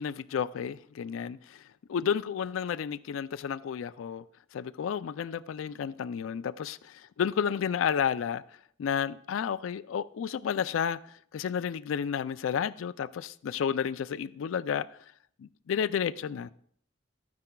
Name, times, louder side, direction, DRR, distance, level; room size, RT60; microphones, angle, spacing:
voice 1, 0.0-1.6 1.9-4.2 4.5-8.4 8.8-14.9 15.4-16.5, left 7 dB, 80° left, 0.3 m, -31 dB
13.0 x 9.5 x 2.3 m
head